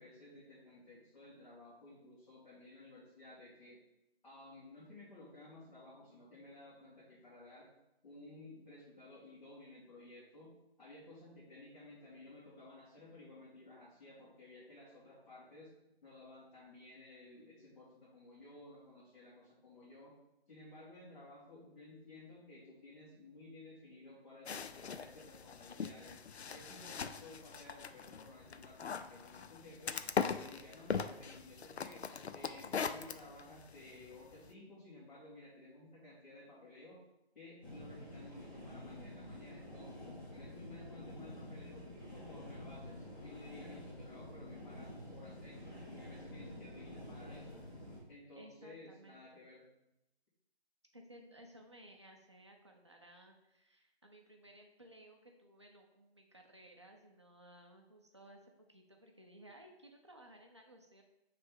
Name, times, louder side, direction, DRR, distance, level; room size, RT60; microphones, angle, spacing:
voice 1, 0.0-3.8 4.2-7.7 8.0-10.5 10.8-15.7 16.0-20.1 20.5-26.2 26.5-29.9 30.3-32.0 32.3-37.0 37.3-41.8 42.1-47.6 48.1-49.7, left 2 dB, 45° left, -10 dB, 2.3 m, -55 dB
sound 1, 24.5-34.5, left 6 dB, 80° left, 0.5 m, -41 dB
sound 2, 37.6-48.0, left 1 dB, 20° left, 1.6 m, -49 dB
voice 2, 46.4-47.2 48.4-49.4 50.9-61.0, right 1 dB, 25° right, 1 dB, 0.5 m, -58 dB
8.3 x 3.4 x 3.6 m, 0.89 s
figure-of-eight pair, 160°, 32 cm